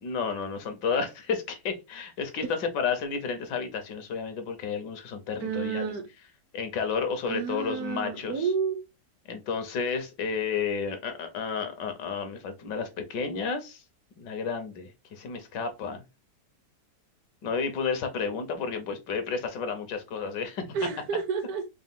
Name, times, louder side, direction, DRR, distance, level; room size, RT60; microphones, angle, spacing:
voice 1, 0.0-5.8 6.5-8.5 9.3-13.8 14.2-16.0 17.4-20.6, left 5 dB, 80° left, 1.5 m, -31 dB
voice 2, 5.4-6.1 7.3-8.8 20.7-21.7, right 6 dB, 65° right, 1.0 m, -30 dB
4.6 x 2.2 x 3.6 m
omnidirectional pair, 1.9 m